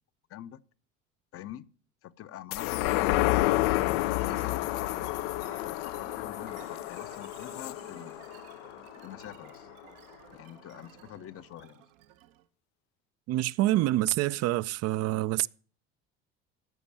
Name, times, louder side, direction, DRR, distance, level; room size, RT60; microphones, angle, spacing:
voice 1, 0.3-0.6 1.3-1.7 2.0-3.7 4.0-5.1 5.6-8.2 9.0-9.7 10.3-11.9, left 12 dB, 50° left, 0.7 m, -45 dB
sound 1, 2.5-9.3 9.7-9.8, left 18 dB, 80° left, 0.5 m, -30 dB
sound 2, 4.2-12.5, right 14 dB, 75° right, 0.9 m, -53 dB
voice 2, 13.3-15.5, right 16 dB, 55° right, 0.5 m, -26 dB
14.0 x 5.2 x 6.9 m
hypercardioid pair, 75°, 30 cm